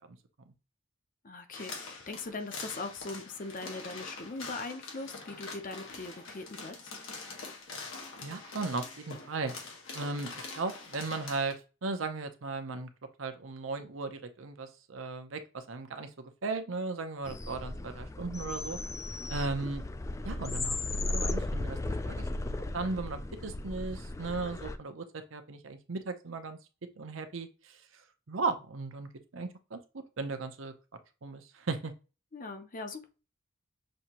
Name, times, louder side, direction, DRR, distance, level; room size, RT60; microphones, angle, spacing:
voice 1, 1.2-6.9 32.3-33.1, left 3 dB, 45° left, 0.7 m, -40 dB
sound 1, 1.5-11.5, left 3 dB, 85° left, 1.4 m, -44 dB
voice 2, 8.2-9.5 9.9-12.9 13.2-18.8 19.3-19.9 20.2-20.8 21.0-21.8 22.0-22.3 22.7-26.6 27.0-27.8 28.3-30.7 31.2-31.9, right 3 dB, 80° right, 0.7 m, -36 dB
sound 2, 17.3-24.8, left 2 dB, 15° left, 0.3 m, -36 dB
6.4 x 2.7 x 2.9 m
head